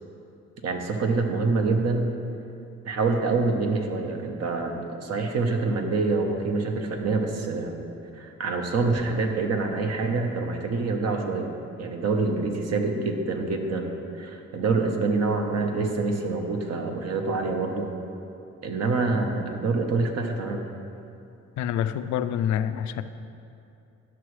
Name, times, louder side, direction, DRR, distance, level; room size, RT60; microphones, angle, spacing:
voice 1, 0.6-2.1 2.8-7.7 8.1-11.5 11.8-17.9 18.6-20.6, right 3 dB, 55° right, 3 dB, 1.0 m, -26 dB
voice 2, 21.6-23.0, left 9 dB, 75° left, 11 dB, 0.4 m, -27 dB
11.5 x 6.0 x 3.2 m, 2.7 s
cardioid pair, 90°, 30 cm